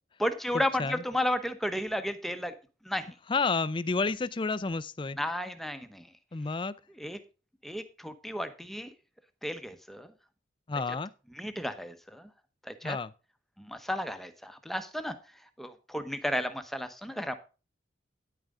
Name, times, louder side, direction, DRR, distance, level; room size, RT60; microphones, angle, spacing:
voice 1, 0.2-2.5 2.8-3.1 5.2-6.1 7.0-7.2 7.6-8.9 9.4-10.1 11.3-12.3 12.6-13.0 13.6-15.2 15.6-17.3, left 1 dB, ahead, 0.9 m, -33 dB
voice 2, 3.3-5.2 6.3-6.7 10.7-11.1 12.8-13.1, left 4 dB, 25° left, 0.4 m, -30 dB
10.0 x 9.0 x 3.7 m
head